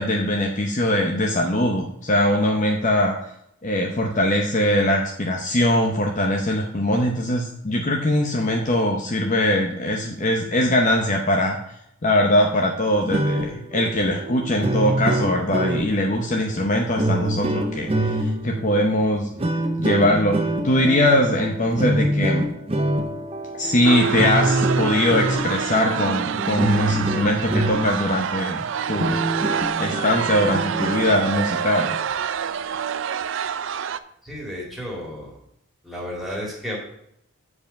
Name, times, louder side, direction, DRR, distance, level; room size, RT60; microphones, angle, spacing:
voice 1, 0.0-3.2 3.6-11.6 12.0-19.3 19.8-22.5 23.5-28.6 28.9-29.3 29.8-32.0, left 1 dB, 35° left, 1 dB, 0.7 m, -21 dB
sound 1, 12.9-28.1 28.6-28.7 28.9-31.1, right 1 dB, 25° right, 0.6 m, -26 dB
sound 2, 23.8-34.0, right 7 dB, 60° right, 0.4 m, -27 dB
voice 2, 34.2-35.3 35.8-36.8, equal, ahead, -3 dB, 2.2 m, -32 dB
7.4 x 4.9 x 6.4 m, 0.75 s
head